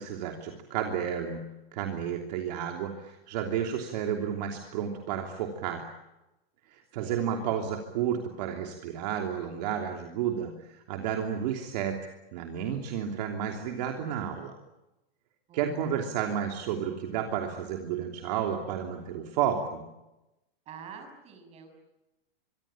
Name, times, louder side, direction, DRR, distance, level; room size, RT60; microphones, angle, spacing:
voice 1, 0.0-1.4 1.7-5.8 6.6-14.5 15.5-19.8, right 8 dB, 45° right, 3 dB, 3.1 m, -32 dB
voice 2, 7.0-7.5 15.5-16.0 20.7-21.8, right 6 dB, 20° right, 6 dB, 6.2 m, -47 dB
25.0 x 24.0 x 8.8 m, 0.96 s
supercardioid pair, 170°, 29 cm